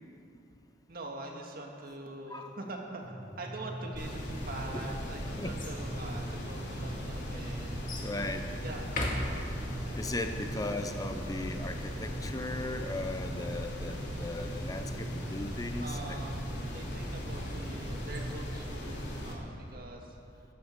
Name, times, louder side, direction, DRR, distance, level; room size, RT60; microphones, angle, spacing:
voice 1, 0.9-3.0 3.4-8.1 8.6-9.0 15.7-20.4, right 2 dB, 50° right, 1 dB, 2.0 m, -44 dB
sound 1, 3.0-18.2, right 1 dB, 20° right, 2.6 m, -43 dB
sound 2, 3.9-19.3, equal, 60° left, 3.4 m, -39 dB
sound 3, 4.6-5.8 6.6-6.7 7.9-8.2 8.8-9.9 16.9-18.2, left 1 dB, 45° left, 2.2 m, -39 dB
voice 2, 8.0-8.5 10.0-16.0, left 2 dB, 20° left, 7 dB, 0.6 m, -37 dB
14.0 x 12.5 x 6.6 m, 2.7 s
head